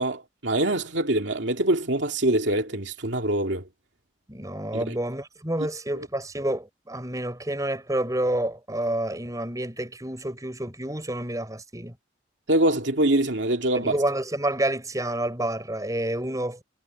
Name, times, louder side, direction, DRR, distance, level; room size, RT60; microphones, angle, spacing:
voice 1, 0.0-3.6 4.7-5.0 5.9-6.1 12.5-13.9, right 1 dB, 70° right, 2.5 m, -24 dB
voice 2, 4.3-11.9 13.7-16.6, right 1 dB, 20° right, 7.7 m, -29 dB
head